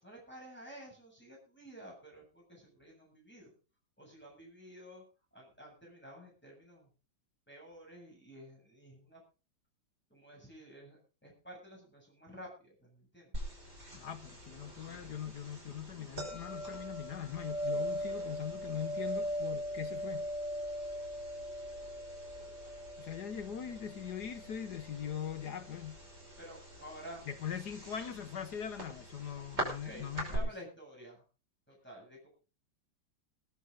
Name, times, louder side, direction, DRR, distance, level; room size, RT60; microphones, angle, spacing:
voice 1, 0.0-3.5 4.0-5.0 5.3-6.9 7.5-9.2 10.1-13.3 14.6-15.2 26.4-27.2 27.9-28.0 29.8-31.2 31.7-32.3, right 1 dB, 5° left, 7.7 m, -51 dB
sound 1, 13.3-30.4, equal, 35° right, 6.4 m, -41 dB
voice 2, 13.9-20.3 23.0-26.0 27.3-30.5, left 9 dB, 65° left, 1.5 m, -41 dB
21.0 x 11.0 x 3.9 m
omnidirectional pair, 2.0 m